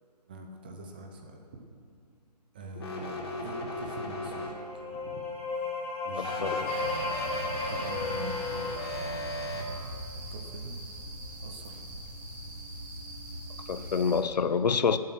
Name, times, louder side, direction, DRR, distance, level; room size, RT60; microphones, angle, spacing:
voice 1, 0.3-1.4 2.5-4.5 4.9-5.2 6.0-9.7 10.3-10.8 11.4-11.8 12.3-12.5, right 2 dB, 15° right, 3 dB, 0.6 m, -44 dB
sound 1, 2.8-4.9 6.2-9.6, left 2 dB, 35° left, 1.8 m, -36 dB
sound 2, 4.2-9.9, left 3 dB, 15° left, 3.1 m, -36 dB
voice 2, 6.2-6.7 13.7-15.0, left 5 dB, 80° left, 13 dB, 0.7 m, -27 dB
sound 3, 6.7-14.2, right 1 dB, 50° right, 3.4 m, -41 dB
18.0 x 7.6 x 5.9 m, 2.3 s
hypercardioid pair, 170°, 21 cm